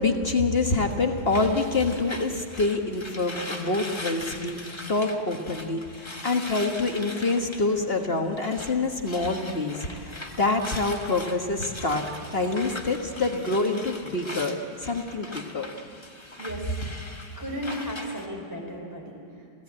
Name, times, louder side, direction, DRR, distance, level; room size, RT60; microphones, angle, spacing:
voice 1, 0.0-4.6 4.9-15.7, left 3 dB, 35° left, 3 dB, 1.3 m, -26 dB
sound 1, 0.8-8.8 9.0-18.3, left 2 dB, 15° left, 1.2 m, -40 dB
voice 2, 17.4-19.2, equal, 10° right, -1 dB, 4.5 m, -34 dB
28.0 x 16.0 x 8.8 m, 2.4 s
omnidirectional pair, 2.2 m